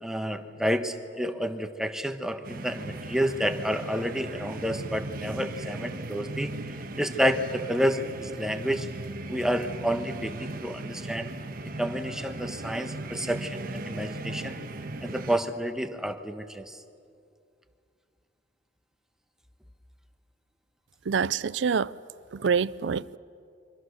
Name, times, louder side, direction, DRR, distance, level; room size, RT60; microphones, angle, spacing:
voice 1, 0.0-6.5 7.0-8.9 9.3-11.3 11.8-14.6 15.0-16.7, equal, 5° right, 1.2 m, -29 dB
sound 1, 2.4-15.4, right 2 dB, 50° right, 1.3 m, -37 dB
voice 2, 21.1-21.9 22.3-23.2, right 6 dB, 75° right, 0.5 m, -26 dB
26.5 x 24.5 x 6.6 m
head